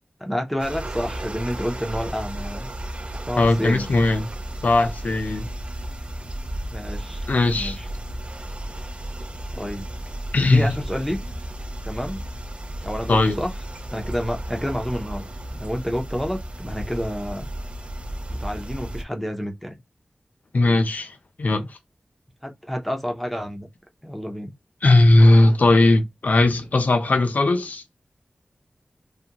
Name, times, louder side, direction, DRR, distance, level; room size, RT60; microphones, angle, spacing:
voice 1, 0.2-2.7 3.3-3.9 6.7-7.9 9.5-9.9 10.4-11.2 11.8-12.2 12.8-13.5 13.9-15.3 15.5-17.5 18.3-19.8 22.4-23.7 24.0-24.5, equal, 5° left, 0.6 m, -29 dB
sound 1, 0.6-19.0, right 1 dB, 40° right, 0.4 m, -34 dB
voice 2, 3.4-4.3 4.6-5.5 7.3-7.8 10.3-10.8 13.1-13.4 20.5-21.8 24.8-27.8, left 2 dB, 70° left, 0.5 m, -18 dB
2.4 x 2.2 x 2.8 m
wide cardioid pair, 65°, 3 cm